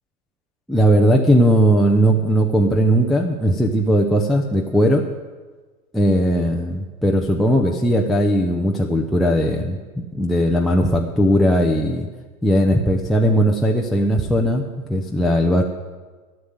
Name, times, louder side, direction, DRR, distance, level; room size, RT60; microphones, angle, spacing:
voice 1, 0.7-5.0 5.9-12.1 12.4-14.6 14.9-15.6, equal, ahead, 0 dB, 0.6 m, -18 dB
11.0 x 7.3 x 9.4 m, 1.3 s
hypercardioid pair, 100°, 45 cm